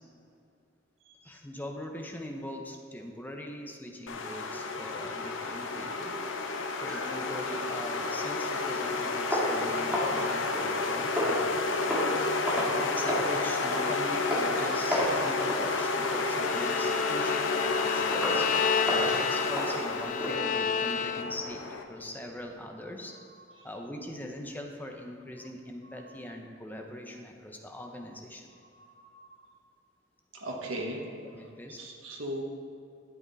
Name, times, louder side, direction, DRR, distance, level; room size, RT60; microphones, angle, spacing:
voice 1, 1.2-6.1 6.8-12.4 12.8-23.1 23.6-28.5 31.3-31.8, left 1 dB, 10° left, 2 dB, 0.8 m, -42 dB
sound 1, 4.1-21.8, left 3 dB, 80° left, 0.8 m, -31 dB
voice 2, 6.7-7.1 23.1-23.2 23.5-23.7 24.0-24.3 25.8-26.2 28.7-29.5 30.3-31.5 31.8-32.4, right 1 dB, 90° right, -1 dB, 1.3 m, -40 dB
sound 2, 9.3-10.8 11.1-11.5 11.9-12.2 12.5-12.8 13.1-13.3 13.7-13.9 14.3-14.5 14.9-15.2 15.5-15.7 16.1-16.4 16.8-16.9 17.4-17.5 18.1-18.4 18.8-20.4, equal, 5° right, 2.1 m, -31 dB
Bowed string instrument, 16.4-21.6, left 6 dB, 40° left, 0.3 m, -31 dB
12.0 x 7.9 x 4.1 m, 2.4 s
head